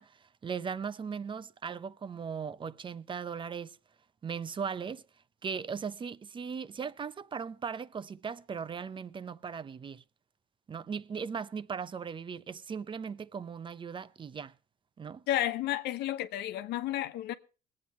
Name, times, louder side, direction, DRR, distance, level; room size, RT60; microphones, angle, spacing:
voice 1, 0.0-3.8 4.2-5.0 5.4-10.0 10.7-14.5 15.0-15.3, right 6 dB, 30° right, 0.6 m, -38 dB
voice 2, 15.3-17.3, left 13 dB, 85° left, 1.1 m, -32 dB
21.0 x 8.7 x 4.3 m
cardioid pair, 110°, 17 cm